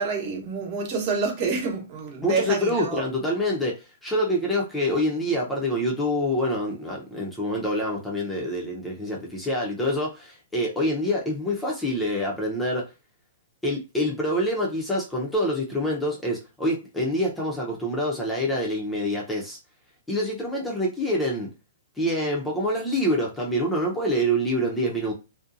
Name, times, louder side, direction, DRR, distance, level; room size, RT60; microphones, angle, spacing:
voice 1, 0.0-3.0, right 4 dB, 40° right, 0.9 m, -28 dB
voice 2, 2.2-12.9 13.6-19.6 20.1-21.5 22.0-25.1, equal, 5° left, 0.6 m, -26 dB
2.7 x 2.1 x 2.5 m
hypercardioid pair, 135°, 0 cm